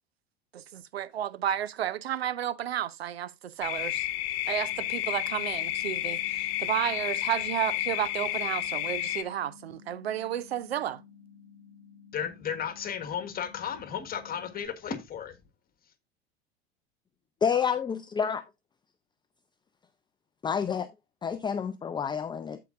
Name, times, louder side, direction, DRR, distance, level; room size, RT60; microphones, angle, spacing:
voice 1, 0.5-4.1 4.5-11.0, right 11 dB, 85° right, 0.6 m, -32 dB
sound 1, 3.6-9.2, left 14 dB, 50° left, 1.1 m, -31 dB
sound 2, 4.7-14.7, left 7 dB, 25° right, 6.4 m, -54 dB
voice 2, 12.1-15.4, left 8 dB, 30° left, 1.5 m, -34 dB
voice 3, 17.4-18.4 20.4-20.9 21.2-22.6, left 7 dB, 15° left, 0.5 m, -29 dB
14.0 x 4.8 x 2.4 m
hypercardioid pair, 85°, 30 cm